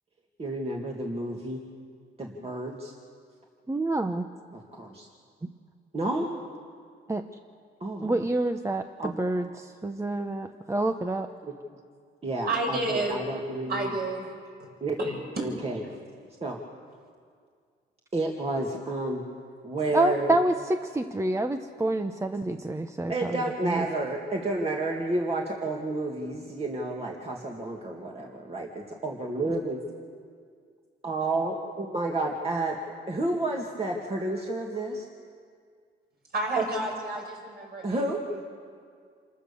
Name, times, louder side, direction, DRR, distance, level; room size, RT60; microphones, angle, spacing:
voice 1, 0.4-1.6 2.2-2.9 4.5-5.1 5.9-6.3 7.8-8.2 9.0-9.1 12.2-13.9 14.8-15.0 15.4-15.8 16.4-16.6 18.1-19.2 19.6-20.3 23.1-29.8 31.0-32.8 33.1-35.1 36.6-36.7 37.8-38.2, right 2 dB, 30° right, -1 dB, 2.4 m, -30 dB
voice 2, 3.7-4.3 5.4-5.5 7.1-7.2 8.0-11.3 19.9-23.9, right 2 dB, 15° right, 7 dB, 0.9 m, -28 dB
voice 3, 12.5-13.2 13.7-14.3 15.0-15.4 36.3-38.0 38.3-38.5, right 2 dB, 50° right, -1 dB, 7.1 m, -30 dB
27.5 x 14.0 x 7.1 m, 2.1 s
cardioid pair, 90°, 20 cm